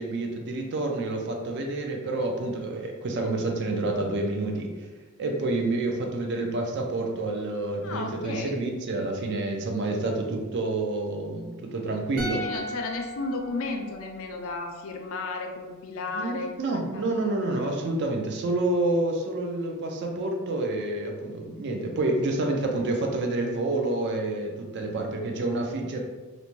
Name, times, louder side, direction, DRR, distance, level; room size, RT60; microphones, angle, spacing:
voice 1, 0.0-4.9 5.2-12.4 16.1-26.0, right 2 dB, 50° right, 2 dB, 0.4 m, -28 dB
voice 2, 7.8-8.5 12.3-17.3 17.6-17.8, left 3 dB, 65° left, 3 dB, 0.4 m, -34 dB
sound 1, 12.2-15.4 15.6-15.8, equal, 85° right, 0.7 m, -38 dB
2.5 x 2.1 x 2.9 m, 1.3 s
head